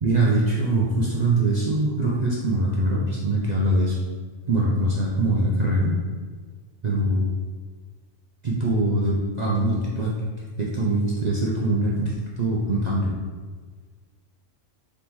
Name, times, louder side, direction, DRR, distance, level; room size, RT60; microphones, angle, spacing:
voice 1, 0.0-4.0 4.5-6.0 6.8-7.2 8.4-10.1 10.6-13.1, right 1 dB, 55° right, -5 dB, 0.4 m, -23 dB
3.9 x 3.6 x 3.0 m, 1.5 s
omnidirectional pair, 1.4 m